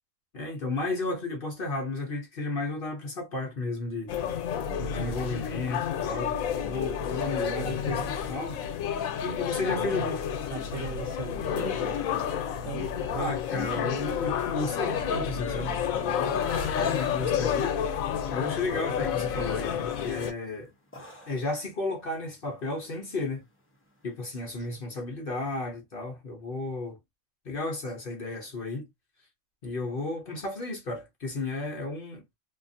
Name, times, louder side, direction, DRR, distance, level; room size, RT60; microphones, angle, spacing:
voice 1, 0.3-4.1 4.8-8.6 9.2-10.2 13.2-16.4 16.8-17.8 18.3-20.7 20.9-23.4 24.0-27.0 27.4-28.9 29.6-32.2, left 2 dB, 50° left, 0.8 m, -33 dB
sound 1, 4.1-20.3, left 8 dB, 85° left, 1.0 m, -30 dB
voice 2, 7.6-8.1 9.8-10.1 10.5-13.4 24.7-24.8, right 5 dB, 60° right, 0.9 m, -39 dB
sound 2, 16.2-24.3, equal, 10° left, 0.7 m, -47 dB
2.7 x 2.5 x 2.5 m
omnidirectional pair, 1.4 m